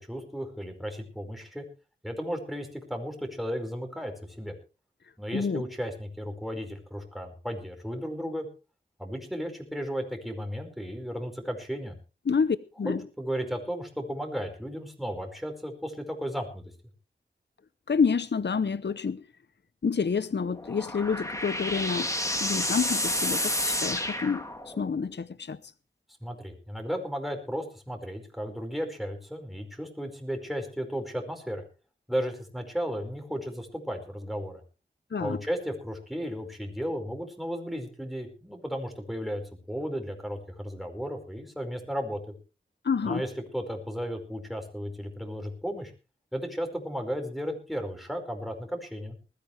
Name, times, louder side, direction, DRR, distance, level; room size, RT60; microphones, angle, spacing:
voice 1, 0.0-1.6 2.0-4.5 5.2-8.5 9.0-11.9 12.8-16.7 26.2-31.6 32.1-34.6 35.2-39.4 39.7-42.2 43.0-45.9 46.3-49.2, equal, ahead, 4.8 m, -34 dB
voice 2, 5.3-5.6 12.3-13.0 17.9-19.2 19.8-22.1 22.4-25.6 35.1-35.4 42.8-43.2, left 5 dB, 60° left, 0.7 m, -28 dB
sound 1, 20.4-25.0, left 1 dB, 15° left, 2.6 m, -30 dB
20.5 x 14.0 x 3.3 m
wide cardioid pair, 45°, 20 cm